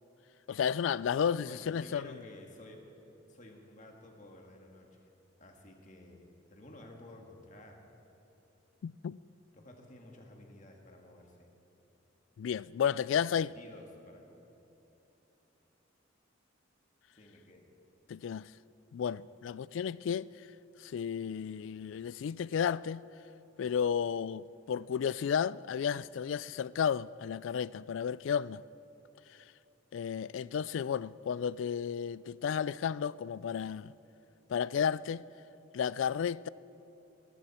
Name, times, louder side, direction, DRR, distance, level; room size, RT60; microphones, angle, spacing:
voice 1, 0.5-2.2 8.8-9.2 12.4-13.5 18.1-18.5 18.9-20.5 20.8-23.0 23.6-28.6 29.3-29.4 29.9-33.9 34.5-35.2 35.7-36.5, left 7 dB, 75° left, 0.3 m, -33 dB
voice 2, 1.5-2.8 3.3-5.1 5.4-6.2 6.5-7.8 9.5-11.5 13.2-14.4 17.1-17.7, left 1 dB, 40° left, 1.9 m, -53 dB
21.5 x 14.5 x 4.3 m
head